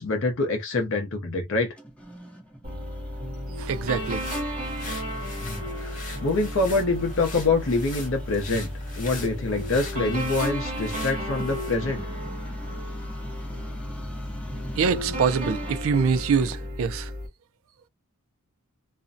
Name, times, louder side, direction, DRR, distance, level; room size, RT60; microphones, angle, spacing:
voice 1, 0.0-1.7 5.4-8.7 9.0-12.1, left 3 dB, 55° left, 0.6 m, -26 dB
sound 1, 1.8-16.8, right 1 dB, 5° left, 0.5 m, -45 dB
sound 2, 2.6-17.3, equal, 35° right, 0.7 m, -33 dB
sound 3, 3.6-11.8, left 3 dB, 35° left, 0.9 m, -43 dB
voice 2, 3.6-4.3 14.8-17.1, right 6 dB, 60° right, 0.3 m, -24 dB
2.5 x 2.0 x 2.5 m
head